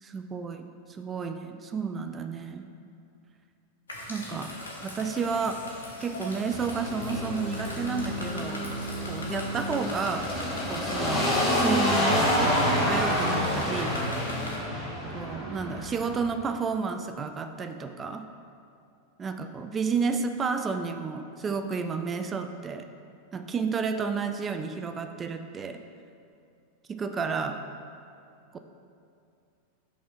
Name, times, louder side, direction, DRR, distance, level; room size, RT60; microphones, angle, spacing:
voice 1, 0.0-2.7 4.1-4.5 4.8-5.6 6.0-8.7 9.1-10.3 10.7-12.6 12.9-14.0 15.1-18.3 19.2-22.9 23.3-25.8 26.9-27.6 28.5-28.6, right 5 dB, 20° right, 7 dB, 0.3 m, -31 dB
sound 1, 3.9-14.6, left 1 dB, 70° left, 1.2 m, -40 dB
sound 2, 6.5-16.1, left 1 dB, 15° left, 1.6 m, -28 dB
5.8 x 4.1 x 5.7 m, 2.5 s
figure-of-eight pair, 90°, 0 cm